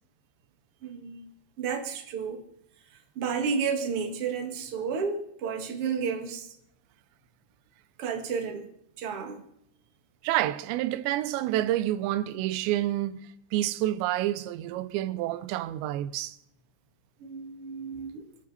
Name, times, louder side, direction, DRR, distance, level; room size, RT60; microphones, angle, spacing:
voice 1, 0.8-1.3 1.6-2.4 3.2-6.5 8.0-8.7 9.0-9.4 17.2-18.2, right 6 dB, 45° right, 2.1 m, -31 dB
voice 2, 10.2-16.4, right 14 dB, 90° right, 3.0 m, -28 dB
25.0 x 12.0 x 4.2 m
omnidirectional pair, 5.0 m